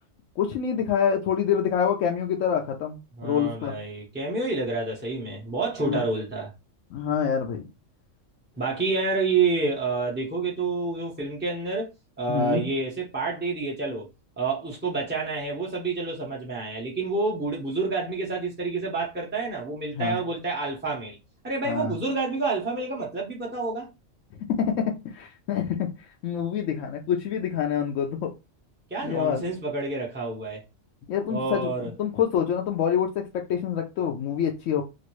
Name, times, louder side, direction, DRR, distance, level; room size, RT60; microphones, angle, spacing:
voice 1, 0.4-3.8 5.8-6.0 6.9-7.6 12.3-12.7 19.9-20.2 21.7-21.9 24.6-28.3 29.0-29.4 31.1-34.8, left 8 dB, 90° left, 1.0 m, -26 dB
voice 2, 3.2-6.5 8.6-11.9 12.2-14.1 14.4-21.2 21.4-23.9 28.9-30.6 31.3-31.9, right 3 dB, 15° right, 0.4 m, -28 dB
3.0 x 2.5 x 3.0 m
omnidirectional pair, 1.3 m